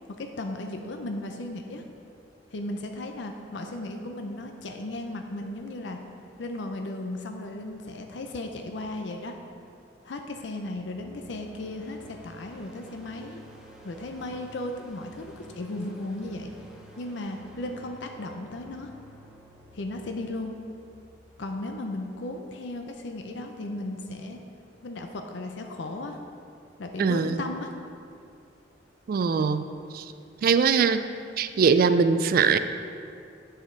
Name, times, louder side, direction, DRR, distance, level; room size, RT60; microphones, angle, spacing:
voice 1, 0.2-1.8 2.5-6.0 6.4-9.3 10.0-13.4 13.8-16.5 17.0-18.9 19.7-20.5 21.4-24.4 24.8-26.2 26.8-27.7, left 2 dB, 75° left, 4 dB, 0.5 m, -35 dB
sound 1, 10.6-21.6, right 1 dB, 5° right, 0.8 m, -51 dB
voice 2, 27.0-27.4 29.1-29.7 29.9-30.0 30.4-31.0 31.4-32.6, right 5 dB, 55° right, 11 dB, 0.3 m, -21 dB
8.3 x 5.0 x 4.4 m, 2.4 s
head